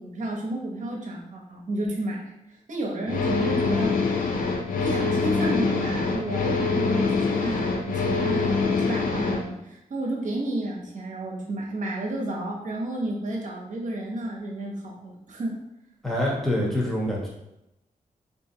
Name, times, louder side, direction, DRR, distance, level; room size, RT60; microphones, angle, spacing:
voice 1, 0.0-3.9 4.8-15.6, right 1 dB, 60° right, -1 dB, 0.8 m, -31 dB
sound 1, 3.1-9.4, left 4 dB, 80° left, 0.5 m, -25 dB
voice 2, 16.0-17.3, left 1 dB, ahead, -4 dB, 1.0 m, -25 dB
3.8 x 2.6 x 2.8 m, 0.90 s
wide cardioid pair, 115°, 14 cm